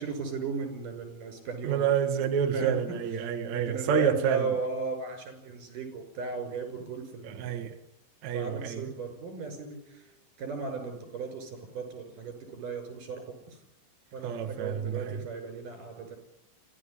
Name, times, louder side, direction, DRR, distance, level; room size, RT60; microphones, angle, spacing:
voice 1, 0.0-1.8 2.5-3.0 3.5-7.5 8.3-10.0 10.4-13.6 14.1-16.2, right 4 dB, 45° right, 7.2 m, -36 dB
voice 2, 1.6-4.5 7.2-7.7 8.2-8.9 14.2-15.2, right 8 dB, 60° right, 1.9 m, -28 dB
26.0 x 16.0 x 10.0 m
omnidirectional pair, 5.3 m